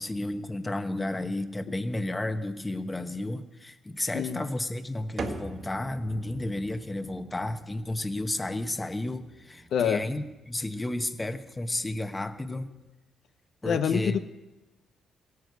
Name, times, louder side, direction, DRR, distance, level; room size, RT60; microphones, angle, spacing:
voice 1, 0.0-12.7 13.6-14.2, left 1 dB, 15° left, 9 dB, 1.0 m, -32 dB
sound 1, 5.2-12.9, right 3 dB, 50° right, 1.8 m, -44 dB
voice 2, 9.7-10.0 13.7-14.2, left 8 dB, 70° left, 9 dB, 0.7 m, -26 dB
16.5 x 9.6 x 8.0 m, 1.1 s
cardioid pair, 90°, 0 cm